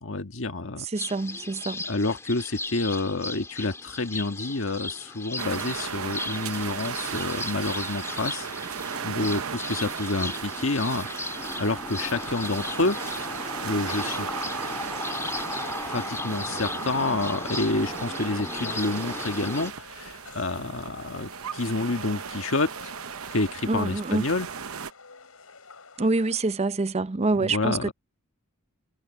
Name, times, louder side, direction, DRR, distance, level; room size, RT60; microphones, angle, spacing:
voice 1, 0.0-0.9 1.9-8.5 9.0-11.1 11.6-13.0 13.6-14.3 15.9-22.9 23.3-24.5 27.3-27.9, left 2 dB, 65° left, 1.6 m, -28 dB
sound 1, 0.9-19.7, left 2 dB, 15° left, 2.1 m, -36 dB
voice 2, 0.9-1.8 23.7-24.2 26.0-27.9, right 3 dB, 30° right, 0.6 m, -26 dB
sound 2, 5.4-24.9, right 7 dB, 90° right, 0.8 m, -36 dB
sound 3, 11.9-26.4, left 4 dB, 85° left, 5.5 m, -48 dB
head